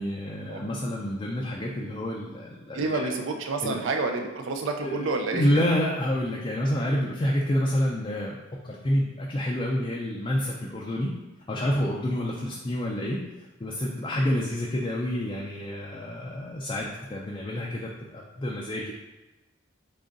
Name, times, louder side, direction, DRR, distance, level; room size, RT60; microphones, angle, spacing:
voice 1, 0.0-3.1 3.6-3.8 4.8-11.1 11.5-13.2 13.6-18.9, equal, 25° left, -2 dB, 0.4 m, -28 dB
voice 2, 2.7-5.6, right 3 dB, 65° right, 4 dB, 0.4 m, -29 dB
3.8 x 3.5 x 3.8 m, 1.1 s
head